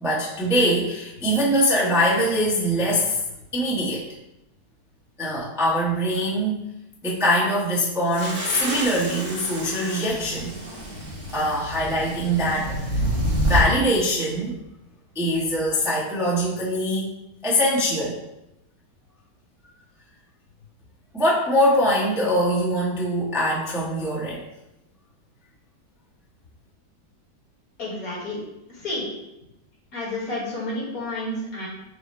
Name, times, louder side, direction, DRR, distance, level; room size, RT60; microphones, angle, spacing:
voice 1, 0.0-3.2 3.5-4.0 5.2-6.6 7.0-10.5 11.3-12.8 13.4-14.5 15.1-17.0 17.4-18.2 21.1-24.4, equal, 5° right, -7 dB, 0.5 m, -22 dB
sound 1, 8.1-13.6, right 1 dB, 20° right, 0.8 m, -28 dB
voice 2, 27.8-28.4 28.8-29.1 29.9-31.7, left 1 dB, 55° left, -5 dB, 1.6 m, -30 dB
4.7 x 2.0 x 4.1 m, 0.87 s
omnidirectional pair, 1.9 m